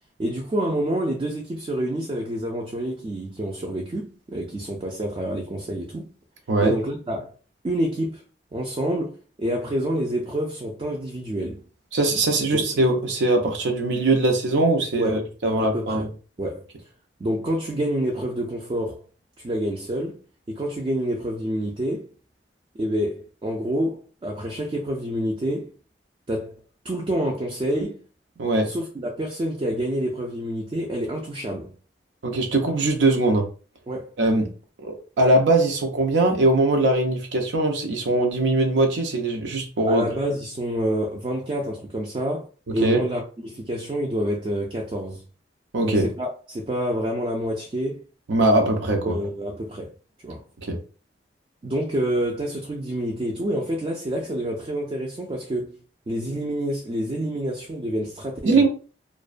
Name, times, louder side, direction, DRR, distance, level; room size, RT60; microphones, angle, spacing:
voice 1, 0.2-6.1 6.6-7.3 7.6-8.2 8.5-11.6 12.5-12.6 15.0-16.1 16.4-16.7 17.2-19.0 19.4-20.2 20.5-22.1 22.7-25.7 26.3-26.6 26.8-28.0 28.6-31.7 33.9-34.1 39.9-42.5 42.7-45.2 45.8-48.0 49.0-49.9 50.2-50.4 51.6-55.8 56.1-58.6, equal, 30° right, 0.3 m, -28 dB
voice 2, 11.9-16.0 28.4-28.7 32.2-33.5 34.2-34.5 34.8-40.0 42.8-43.0 45.7-46.1 48.3-49.2 50.6-50.8 58.4-58.7, right 2 dB, 85° right, 0.5 m, -21 dB
2.4 x 2.1 x 2.4 m
head